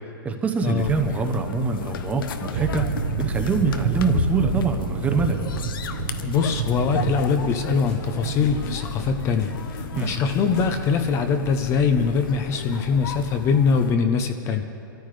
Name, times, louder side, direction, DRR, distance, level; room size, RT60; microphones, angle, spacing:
voice 1, 0.2-2.9 3.2-5.4 9.9-10.1, right 4 dB, 10° right, 5 dB, 0.7 m, -24 dB
sound 1, 0.8-13.9, left 5 dB, 70° left, 0.9 m, -33 dB
sound 2, 2.5-14.0, right 7 dB, 50° right, 0.9 m, -31 dB
voice 2, 6.2-14.6, left 5 dB, 25° left, 7 dB, 0.6 m, -23 dB
sound 3, 7.1-10.8, left 5 dB, 45° left, 1.9 m, -43 dB
23.5 x 13.5 x 3.3 m, 2.7 s
hypercardioid pair, 150°, 12 cm